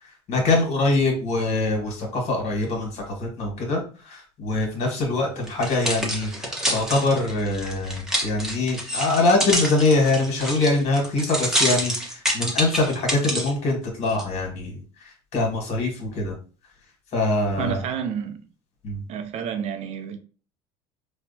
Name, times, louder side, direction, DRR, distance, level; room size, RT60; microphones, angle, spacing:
voice 1, 0.0-16.4 17.1-17.8 18.8-19.0, left 2 dB, 55° left, 1.6 m, -24 dB
sound 1, 5.5-13.5 14.1-14.2, equal, 5° right, 1.0 m, -27 dB
voice 2, 17.6-18.4 19.1-20.2, right 7 dB, 50° right, 0.6 m, -29 dB
4.2 x 2.3 x 2.7 m
supercardioid pair, 90°, 14 cm